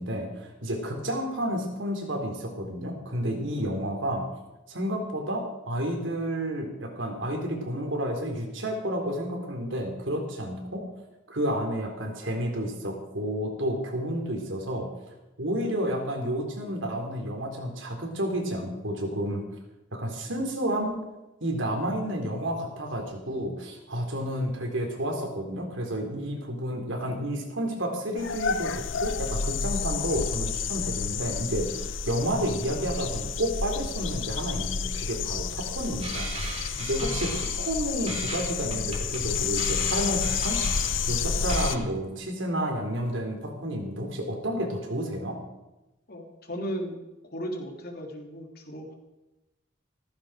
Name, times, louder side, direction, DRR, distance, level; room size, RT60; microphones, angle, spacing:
voice 1, 0.0-4.3 4.7-10.9 11.3-14.9 15.4-19.5 19.9-21.0 21.4-36.3 36.8-40.6 41.1-45.4, equal, 75° right, 2 dB, 3.9 m, -30 dB
sound 1, 28.2-41.8, left 6 dB, 75° left, 0.8 m, -30 dB
sound 2, 36.0-37.8 38.1-41.2 41.5-41.7, right 3 dB, 30° right, 3.1 m, -37 dB
voice 2, 46.1-48.9, equal, 50° left, 2 dB, 3.2 m, -36 dB
16.0 x 15.0 x 5.0 m, 0.99 s
head